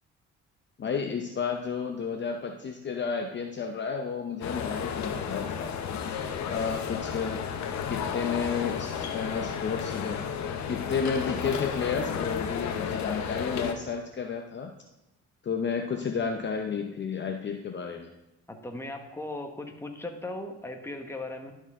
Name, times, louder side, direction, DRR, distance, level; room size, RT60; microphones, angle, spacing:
voice 1, 0.8-5.7 6.5-7.4 7.9-10.3 10.7-14.7 15.4-18.1, left 6 dB, 40° left, 4 dB, 0.7 m, -31 dB
sound 1, 4.4-13.7, left 7 dB, 65° left, 0.8 m, -33 dB
voice 2, 18.5-21.5, left 2 dB, 10° left, 3 dB, 1.1 m, -38 dB
12.0 x 4.6 x 3.6 m, 0.95 s
cardioid pair, 90°, 30 cm